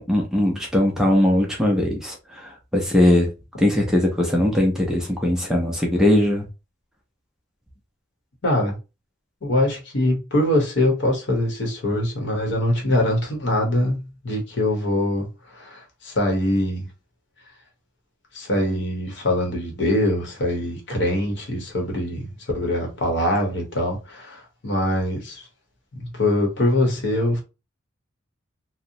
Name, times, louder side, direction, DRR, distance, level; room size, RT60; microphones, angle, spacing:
voice 1, 0.0-3.3 3.6-6.5, left 1 dB, 5° right, 0.4 m, -20 dB
voice 2, 8.4-8.8 9.4-16.9 18.3-25.4 25.9-27.4, left 1 dB, 60° left, 0.9 m, -23 dB
2.8 x 2.0 x 2.6 m
head